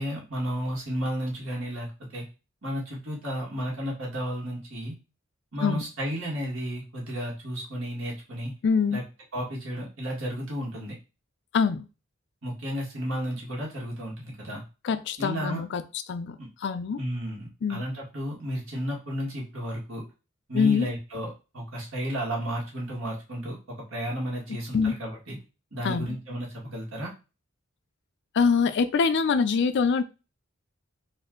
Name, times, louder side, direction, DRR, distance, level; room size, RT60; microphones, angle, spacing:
voice 1, 0.0-2.2 2.6-5.0 5.5-8.5 8.9-9.0 9.3-11.0 12.4-14.6 15.2-15.6 16.4-16.5 17.0-20.0 20.5-25.4 25.7-27.1, equal, 70° right, -3 dB, 1.8 m, -33 dB
voice 2, 8.6-9.0 11.5-11.9 14.8-15.8 16.1-17.0 17.6-17.8 20.5-20.9 24.5-25.0 25.8-26.2 28.3-30.0, left 5 dB, 60° left, 12 dB, 0.4 m, -24 dB
4.2 x 2.6 x 3.8 m, 0.30 s
head